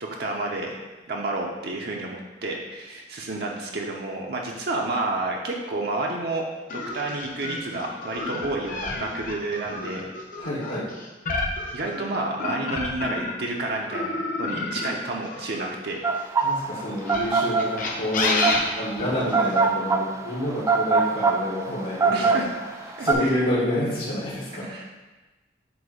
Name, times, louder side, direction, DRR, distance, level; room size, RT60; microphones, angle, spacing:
voice 1, 0.0-0.8 1.1-6.5 6.7-10.1 11.7-16.0 22.1-22.5 23.0-23.4 24.6-24.8, right 2 dB, 55° right, -1 dB, 0.6 m, -30 dB
sound 1, 6.7-13.5 13.9-16.3 17.0-19.6, left 3 dB, 45° left, 0.8 m, -30 dB
voice 2, 10.4-10.9 16.4-22.5 23.0-24.6, left 1 dB, 70° left, -10 dB, 1.6 m, -28 dB
sound 2, 16.0-23.1, right 4 dB, 15° right, 0.3 m, -22 dB
7.9 x 2.7 x 4.9 m, 1.2 s
head